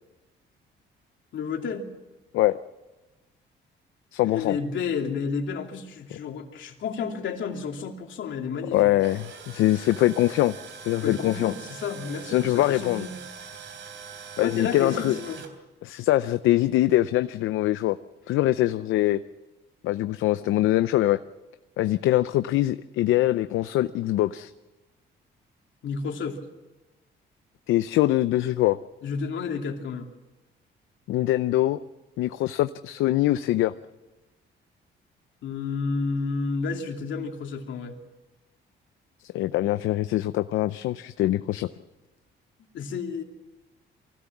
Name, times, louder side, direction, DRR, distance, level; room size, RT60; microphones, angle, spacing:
voice 1, 1.3-1.8 4.3-8.8 11.0-13.1 14.4-15.4 25.8-26.4 29.0-30.1 35.4-38.0 42.7-43.2, left 5 dB, 70° left, 2 dB, 2.9 m, -31 dB
voice 2, 4.1-4.6 8.7-10.5 10.8-11.5 12.3-13.1 14.4-15.2 15.8-18.0 18.3-19.2 19.8-21.2 21.8-24.5 27.7-28.8 31.1-31.8 32.2-33.7 39.3-41.7, left 15 dB, 90° left, 11 dB, 0.6 m, -23 dB
Tools, 8.8-15.5, right 6 dB, 70° right, 3.4 m, -43 dB
23.5 x 16.5 x 7.3 m, 1.1 s
cardioid pair, 90°, 20 cm